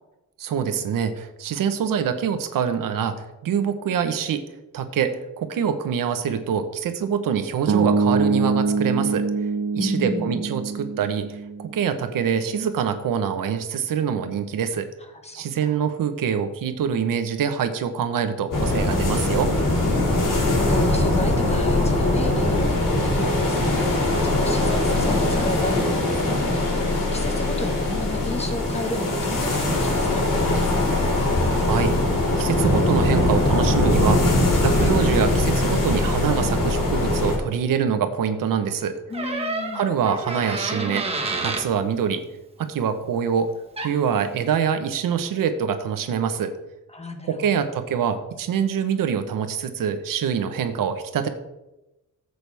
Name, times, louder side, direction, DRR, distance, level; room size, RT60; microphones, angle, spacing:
voice 1, 0.4-4.4 4.7-9.3 9.7-14.9 15.3-19.5 31.5-31.9 32.4-39.0 39.7-41.1 41.4-42.2 42.6-43.5 43.8-46.5 47.3-51.3, right 7 dB, 80° right, 8 dB, 1.1 m, -25 dB
sound 1, 7.7-11.8, right 4 dB, 50° right, 1.0 m, -24 dB
voice 2, 9.8-10.4 15.2-15.7 19.7-31.1 39.1-39.8 46.9-47.6, left 2 dB, 20° left, 5 dB, 1.4 m, -32 dB
sound 2, 18.5-37.4, left 2 dB, 75° left, 3.9 m, -21 dB
Door, 39.1-41.7 43.5-43.6 43.8-44.1, right 3 dB, 20° right, 1.5 m, -29 dB
14.0 x 8.0 x 3.5 m, 0.97 s
cardioid pair, 130°, 33 cm